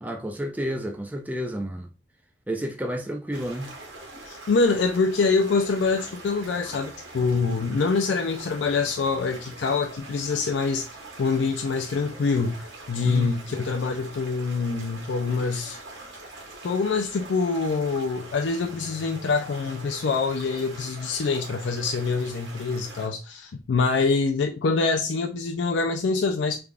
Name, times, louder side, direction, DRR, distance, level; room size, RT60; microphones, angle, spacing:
voice 1, 0.0-1.9 2.5-3.7 13.0-13.3, equal, 10° right, 0.4 m, -30 dB
sound 1, 3.3-23.1, right 2 dB, 80° right, 1.5 m, -43 dB
voice 2, 4.3-10.9 11.2-15.8 16.6-26.6, left 4 dB, 80° left, 0.4 m, -25 dB
3.5 x 3.4 x 2.3 m
head